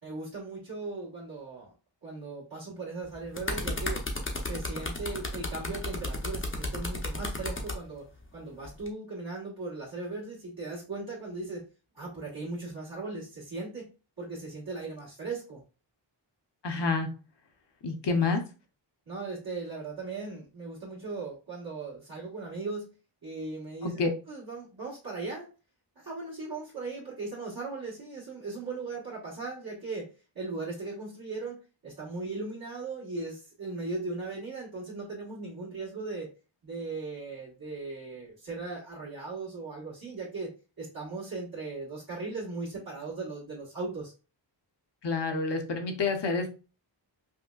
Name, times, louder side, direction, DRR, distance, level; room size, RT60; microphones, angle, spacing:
voice 1, 0.0-1.7 2.0-4.0 4.4-8.1 8.3-11.6 11.9-13.9 14.2-15.6 19.1-22.9 23.2-25.5 25.9-30.1 30.3-36.3 36.6-40.5 40.8-44.1, right 3 dB, 50° right, -8 dB, 1.7 m, -38 dB
sound 1, 3.1-7.8 8.6-8.9, left 2 dB, 25° left, 0.7 m, -34 dB
voice 2, 16.6-17.1 17.8-18.4 23.8-24.1 45.0-46.5, left 4 dB, 65° left, 4 dB, 0.9 m, -28 dB
5.4 x 2.1 x 2.3 m, 0.33 s
wide cardioid pair, 110°, 46 cm